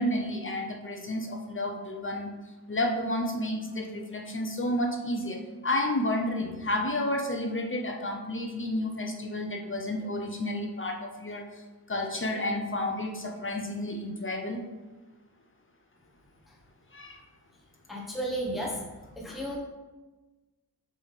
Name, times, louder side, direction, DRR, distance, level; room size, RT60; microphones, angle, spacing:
voice 1, 0.0-2.3 2.7-11.5 11.9-14.6 16.9-17.2, left 1 dB, 30° left, 2 dB, 0.6 m, -31 dB
voice 2, 17.9-18.9 19.1-19.6, right 1 dB, ahead, -4 dB, 0.9 m, -33 dB
7.4 x 3.4 x 4.0 m, 1.2 s
wide cardioid pair, 140°, 40 cm